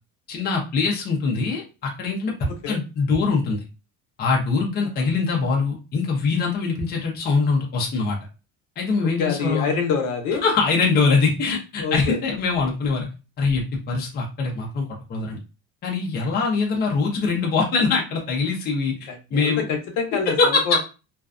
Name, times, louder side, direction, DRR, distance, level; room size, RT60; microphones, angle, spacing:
voice 1, 0.3-3.6 4.2-8.2 8.8-9.7 10.4-13.1 13.4-15.4 15.8-19.6 20.3-20.8, left 4 dB, 30° left, -1 dB, 0.6 m, -23 dB
voice 2, 2.5-2.8 5.0-5.1 9.2-10.4 11.8-12.2 19.1-20.4 20.7-20.8, left 5 dB, 65° left, 3 dB, 0.8 m, -26 dB
2.5 x 2.2 x 2.4 m, 0.30 s
cardioid pair, 150°, 33 cm